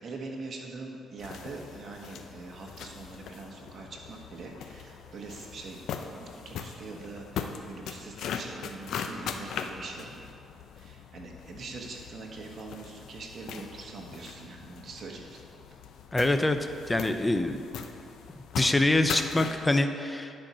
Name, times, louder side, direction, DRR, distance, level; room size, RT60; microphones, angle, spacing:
voice 1, 0.0-10.3 10.8-15.4, right 3 dB, 50° right, 0 dB, 1.4 m, -43 dB
sound 1, 1.2-19.7, left 6 dB, 75° left, 0.6 m, -40 dB
voice 2, 16.1-16.6 16.9-17.6 18.6-20.3, left 2 dB, 15° left, 8 dB, 0.6 m, -25 dB
10.5 x 4.5 x 6.2 m, 2.5 s
cardioid pair, 90°, 0 cm